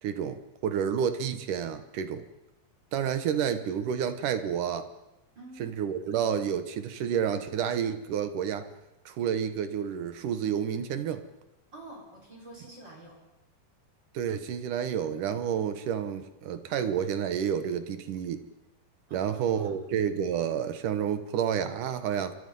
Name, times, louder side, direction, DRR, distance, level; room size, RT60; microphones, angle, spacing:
voice 1, 0.0-2.3 2.9-4.9 5.6-8.7 9.1-11.2 14.1-18.5 19.1-22.4, right 8 dB, 65° right, 10 dB, 2.5 m, -30 dB
voice 2, 5.3-5.8 11.7-13.2 19.1-19.7, right 1 dB, 25° right, -1 dB, 5.7 m, -48 dB
27.5 x 23.0 x 5.5 m, 0.95 s
omnidirectional pair, 4.5 m